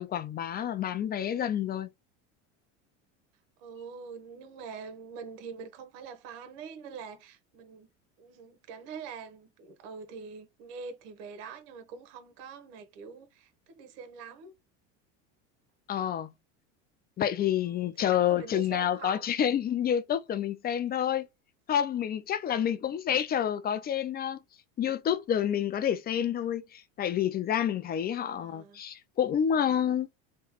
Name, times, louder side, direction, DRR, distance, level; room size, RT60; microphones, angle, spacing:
voice 1, 0.0-1.9 15.9-16.3 17.2-21.3 21.7-24.4 24.8-30.1, left 9 dB, 25° left, 0.4 m, -28 dB
voice 2, 3.6-7.9 8.2-14.5 17.7-19.3 22.5-22.8 28.2-28.8, right 6 dB, 65° right, 1.0 m, -44 dB
3.0 x 2.2 x 2.9 m
supercardioid pair, 95°, 36 cm